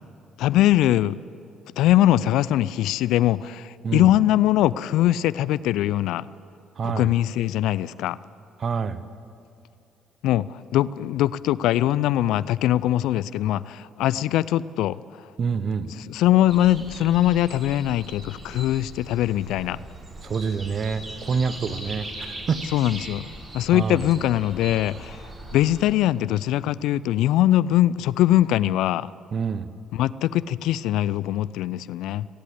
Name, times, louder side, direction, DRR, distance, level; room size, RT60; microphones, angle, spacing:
voice 1, 0.4-1.2 1.8-6.3 6.8-8.2 10.2-15.0 15.9-19.8 22.7-23.3 23.5-25.2 25.5-29.1 29.9-32.3, left 13 dB, 70° left, 19 dB, 0.4 m, -22 dB
voice 2, 6.8-7.1 8.6-9.0 15.4-15.9 20.2-22.7 23.7-24.0 29.3-29.7, right 5 dB, 50° right, 14 dB, 1.0 m, -27 dB
sound 1, 16.5-25.9, right 1 dB, 35° right, 3.9 m, -39 dB
30.0 x 11.0 x 8.0 m, 2.5 s
hypercardioid pair, 50°, 0 cm